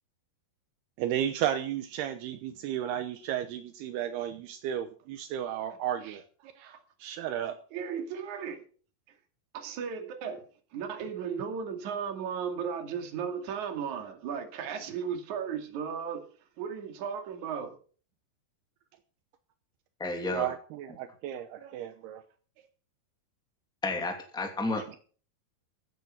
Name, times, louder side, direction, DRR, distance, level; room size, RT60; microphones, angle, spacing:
voice 1, 1.0-6.2 6.6-7.6 20.3-22.2 24.7-25.0, right 10 dB, 80° right, 2.8 m, -34 dB
voice 2, 7.7-8.6 9.5-10.4 10.7-16.2 16.6-17.7, right 7 dB, 50° right, 3.4 m, -35 dB
voice 3, 20.0-20.5 23.8-24.9, left 2 dB, ahead, 1.9 m, -32 dB
15.0 x 9.6 x 5.8 m
omnidirectional pair, 4.7 m